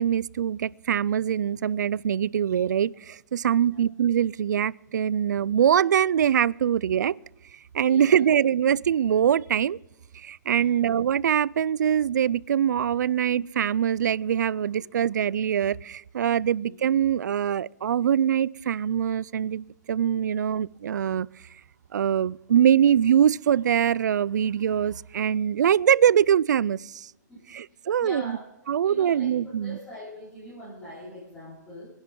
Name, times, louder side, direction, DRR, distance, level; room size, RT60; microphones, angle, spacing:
voice 1, 0.0-7.2 7.7-9.8 10.1-21.3 21.9-27.1 27.5-28.3 28.7-29.8, right 9 dB, 75° right, 0.4 m, -23 dB
voice 2, 3.5-3.8 7.8-8.2 10.6-10.8 16.4-16.7 27.3-28.4 28.8-31.9, left 1 dB, 10° left, 4.3 m, -43 dB
24.5 x 10.5 x 3.7 m
hypercardioid pair, 180°, 10 cm